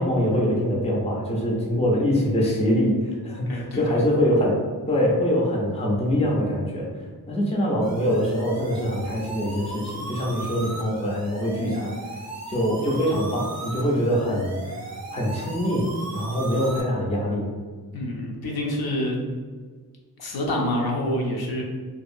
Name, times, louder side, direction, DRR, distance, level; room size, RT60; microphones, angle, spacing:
voice 1, 0.0-4.5 4.9-6.9 7.3-11.9 12.5-15.9 16.1-17.5, equal, 15° left, -3 dB, 0.4 m, -24 dB
voice 2, 3.5-4.0 17.9-19.2 20.2-21.6, left 1 dB, 70° left, -1 dB, 0.6 m, -27 dB
sound 1, 7.8-16.8, right 2 dB, 45° right, 0.5 m, -37 dB
2.7 x 2.3 x 2.5 m, 1.5 s
wide cardioid pair, 175°, 39 cm